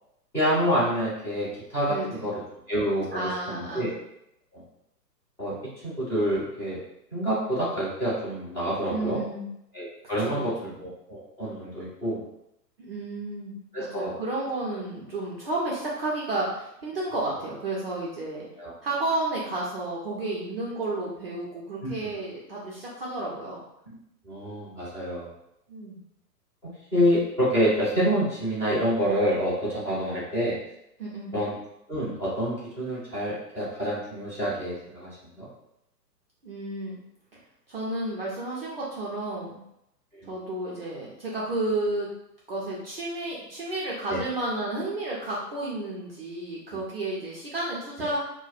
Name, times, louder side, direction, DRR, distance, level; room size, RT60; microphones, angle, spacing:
voice 1, 0.3-2.3 2.7-3.9 4.5-4.6 5.4-5.5 5.8-6.8 7.1-9.2 9.7-10.5 10.8-12.2 13.7-14.1 18.6-18.7 21.8-21.9 23.9-24.0 24.3-25.3 26.9-30.5 31.3-31.5 31.9-35.5 40.1-40.3 44.1-44.2, equal, 5° left, -13 dB, 0.7 m, -27 dB
voice 2, 1.9-2.3 3.1-3.9 8.9-9.5 10.2-10.7 12.8-18.5 18.8-23.6 25.7-26.0 31.0-31.4 36.4-37.0 37.7-39.6 40.3-42.1 42.5-48.2, right 2 dB, 35° right, -6 dB, 0.5 m, -32 dB
2.3 x 2.2 x 3.9 m, 0.81 s
figure-of-eight pair, 120°, 50 cm